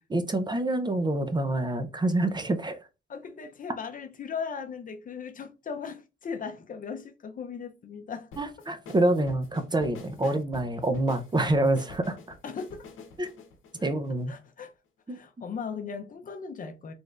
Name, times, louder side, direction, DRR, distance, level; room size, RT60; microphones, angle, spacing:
voice 1, 0.1-2.8 8.4-12.4 13.2-13.3 13.8-14.3 15.1-15.2, right 1 dB, 20° right, 0.6 m, -27 dB
voice 2, 3.1-8.3 10.2-10.3 12.4-12.8 13.8-13.9 14.3-14.7 15.1-16.9, left 6 dB, 45° left, 0.6 m, -38 dB
sound 1, 8.3-14.6, left 4 dB, 85° left, 0.9 m, -47 dB
4.1 x 3.3 x 2.4 m
cardioid pair, 90°, 20 cm